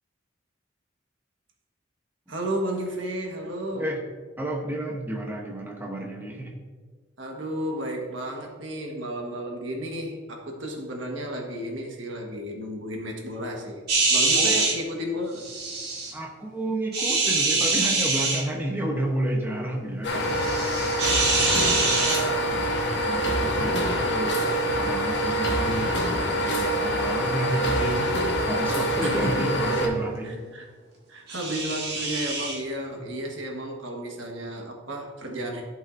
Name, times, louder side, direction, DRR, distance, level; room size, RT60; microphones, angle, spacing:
voice 1, 2.3-3.9 7.2-13.8 14.1-15.4 21.0-21.3 28.6-29.5 30.2-30.7 31.1-35.6, equal, 75° right, 1 dB, 1.4 m, -33 dB
voice 2, 4.4-6.6 14.4-14.6 16.1-24.4 24.8-30.4 33.0-33.1, right 1 dB, 10° right, 0 dB, 0.8 m, -31 dB
sound 1, 13.9-14.7 15.4-16.1 16.9-18.4 20.3-22.2 31.3-32.6, right 3 dB, 55° right, 2.0 m, -24 dB
sound 2, 20.0-29.9, equal, 60° left, 1.3 m, -25 dB
14.0 x 5.6 x 2.6 m, 1.5 s
head